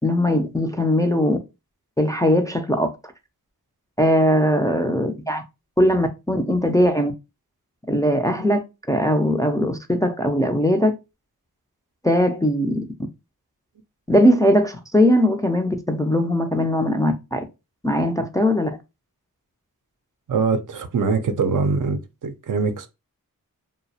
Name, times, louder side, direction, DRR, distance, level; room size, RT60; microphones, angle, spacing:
voice 1, 0.0-1.4 2.0-2.9 4.0-5.4 5.8-7.1 7.9-8.6 8.9-10.9 12.0-12.9 14.1-17.4 17.8-18.7, equal, 10° left, 0.3 m, -20 dB
voice 2, 20.3-22.9, right 4 dB, 60° right, 0.5 m, -23 dB
2.3 x 2.0 x 2.6 m
cardioid pair, 45°, 37 cm